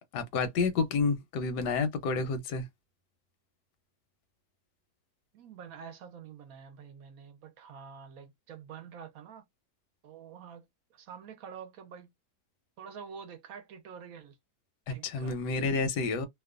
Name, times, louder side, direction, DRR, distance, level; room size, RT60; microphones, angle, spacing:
voice 1, 0.1-2.7 14.9-16.3, left 4 dB, 90° left, 1.3 m, -29 dB
voice 2, 5.3-9.5 10.0-10.7 10.9-12.1 12.8-14.4 14.9-15.4, right 7 dB, 70° right, 0.9 m, -47 dB
2.9 x 2.1 x 2.3 m
omnidirectional pair, 1.7 m